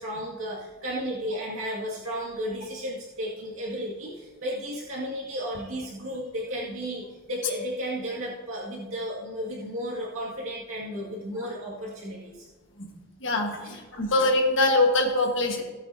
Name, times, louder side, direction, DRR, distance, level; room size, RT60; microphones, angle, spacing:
voice 1, 0.0-12.5 13.6-14.1 15.5-15.6, equal, 75° right, -6 dB, 2.1 m, -34 dB
voice 2, 13.2-15.6, left 2 dB, 60° left, 2 dB, 1.5 m, -23 dB
17.0 x 8.2 x 2.8 m, 1.4 s
head